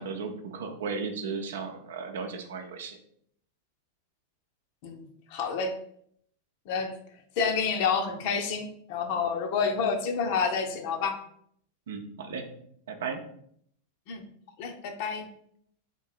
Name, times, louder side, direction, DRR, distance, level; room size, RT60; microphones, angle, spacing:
voice 1, 0.0-3.0 11.9-12.5 12.9-13.2, right 5 dB, 60° right, 4 dB, 0.7 m, -35 dB
voice 2, 4.8-5.7 6.7-6.9 7.4-11.2 14.1-14.2 14.6-15.3, left 5 dB, 45° left, 6 dB, 0.7 m, -29 dB
3.7 x 3.0 x 4.4 m, 0.66 s
figure-of-eight pair, 90°, 0 cm